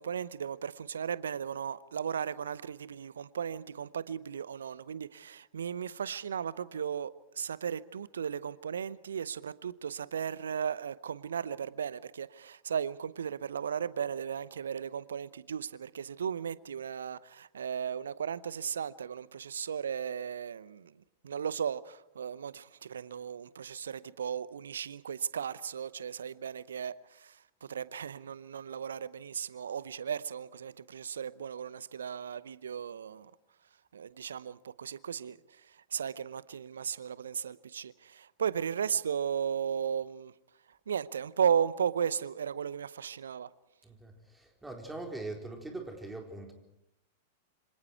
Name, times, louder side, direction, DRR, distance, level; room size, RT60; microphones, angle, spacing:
voice 1, 0.0-33.3 33.9-40.3 40.7-43.5, right 7 dB, 70° right, 0.7 m, -36 dB
voice 2, 43.8-46.5, right 2 dB, 10° right, 4.1 m, -42 dB
26.5 x 25.5 x 4.7 m
figure-of-eight pair, 95°, 0 cm